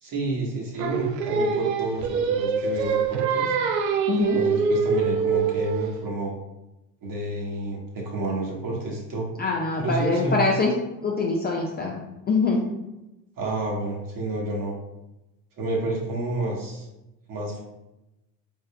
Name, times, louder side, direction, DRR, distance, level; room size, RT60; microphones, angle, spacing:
voice 1, 0.0-3.5 4.3-6.3 7.0-9.3 9.8-10.4 13.4-14.7 15.6-16.9 17.3-17.6, right 1 dB, 40° right, -1 dB, 1.3 m, -29 dB
Singing, 0.8-6.0, right 6 dB, 75° right, 0.6 m, -24 dB
voice 2, 4.1-4.4 9.4-10.7 11.0-12.7, left 3 dB, 20° left, -1 dB, 0.4 m, -24 dB
4.3 x 3.7 x 2.2 m, 0.96 s
figure-of-eight pair, 65°, 50 cm